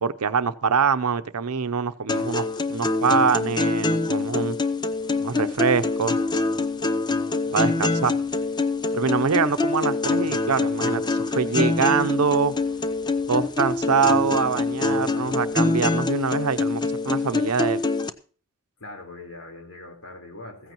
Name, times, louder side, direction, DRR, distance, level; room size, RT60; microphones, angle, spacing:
voice 1, 0.0-4.6 5.2-6.2 7.5-8.1 8.9-12.5 13.3-17.8, right 6 dB, 85° right, 0.7 m, -24 dB
voice 2, 1.8-2.3 7.4-8.2 9.0-9.3 18.8-20.7, left 2 dB, 70° left, 4.1 m, -43 dB
sound 1, 2.1-18.1, left 3 dB, 20° left, 0.6 m, -25 dB
15.5 x 14.5 x 3.0 m
head